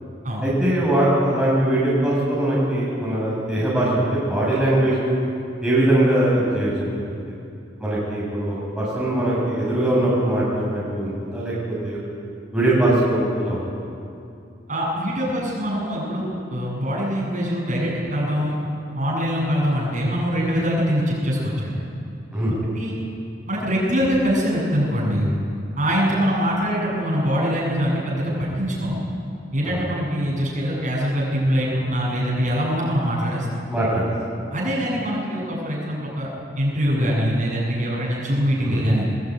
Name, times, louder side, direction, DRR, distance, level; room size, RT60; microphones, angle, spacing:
voice 1, 0.4-5.1 5.6-7.3 7.8-12.0 12.5-13.6 22.3-22.5 29.6-29.8 33.7-34.1 38.6-38.8, right 1 dB, 5° right, -8 dB, 6.7 m, -21 dB
voice 2, 14.7-18.6 19.0-21.8 22.7-22.9 23.5-25.3 25.8-29.0 29.5-33.4 34.5-36.3 36.6-39.1, equal, 40° right, -4 dB, 7.9 m, -23 dB
21.0 x 21.0 x 9.3 m, 2.5 s
head